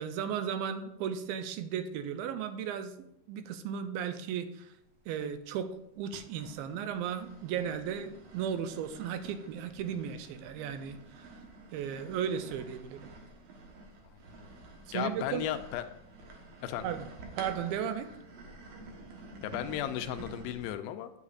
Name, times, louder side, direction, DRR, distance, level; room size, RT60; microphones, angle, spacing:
voice 1, 0.0-2.9 3.3-4.7 5.1-5.7 6.0-11.3 11.7-13.1 14.9-15.4 16.8-17.1 17.4-18.1, right 8 dB, 80° right, 10 dB, 2.3 m, -35 dB
sound 1, 4.9-5.6 6.1-20.7, right 2 dB, 60° right, 1.9 m, -50 dB
voice 2, 14.9-15.8 16.6-16.9 19.4-21.1, left 11 dB, 85° left, 9 dB, 2.4 m, -35 dB
9.3 x 8.2 x 2.5 m, 0.80 s
omnidirectional pair, 4.3 m